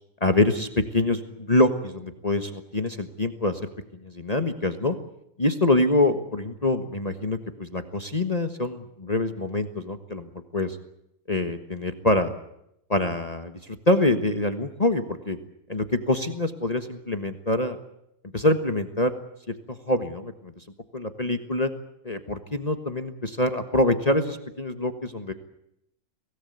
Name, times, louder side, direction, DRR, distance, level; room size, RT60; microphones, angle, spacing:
voice 1, 0.2-3.7 4.0-4.9 5.4-10.8 11.3-12.3 12.9-15.4 15.7-17.8 18.3-19.1 19.5-20.6 20.9-21.7 22.0-25.3, left 2 dB, 25° left, 8 dB, 1.4 m, -25 dB
24.0 x 18.0 x 9.5 m, 0.78 s
omnidirectional pair, 1.7 m